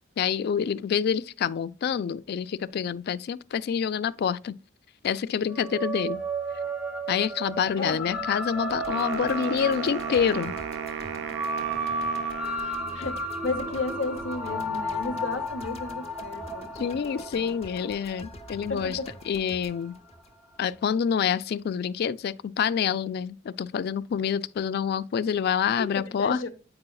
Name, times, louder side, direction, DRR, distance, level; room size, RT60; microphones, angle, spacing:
voice 1, 0.2-4.5 5.0-6.2 7.1-10.5 16.8-19.0 19.3-19.9 20.6-26.5, left 7 dB, 55° left, 0.3 m, -27 dB
sound 1, 5.5-20.2, right 1 dB, 5° right, 0.6 m, -34 dB
voice 2, 7.8-8.3 12.6-17.5 18.7-19.1 25.8-26.5, left 3 dB, 75° left, 0.8 m, -34 dB
sound 2, 8.7-20.9, left 1 dB, 35° left, 0.8 m, -47 dB
Wind instrument woodwind instrument, 8.9-13.1, right 7 dB, 65° right, 0.3 m, -35 dB
8.7 x 4.8 x 2.3 m
head